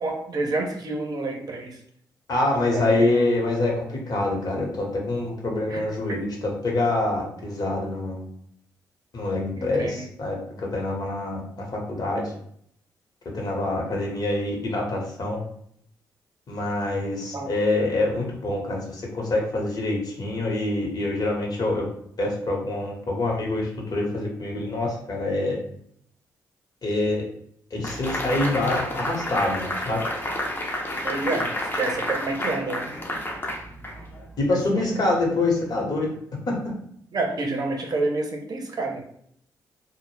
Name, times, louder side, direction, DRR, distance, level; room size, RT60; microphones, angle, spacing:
voice 1, 0.0-1.8 2.6-3.2 5.7-5.8 9.5-10.1 17.3-17.5 31.0-32.9 34.7-34.9 37.1-39.0, right 3 dB, 50° right, 1 dB, 0.7 m, -29 dB
voice 2, 2.3-8.2 9.1-12.3 13.3-15.4 16.5-21.9 22.2-25.6 26.8-27.3 27.7-30.0 34.4-36.1 36.5-36.7, left 2 dB, 50° left, -1 dB, 1.0 m, -26 dB
sound 1, 27.8-34.3, left 1 dB, 25° left, 0.6 m, -30 dB
2.1 x 2.0 x 3.1 m, 0.67 s
supercardioid pair, 50°, 8 cm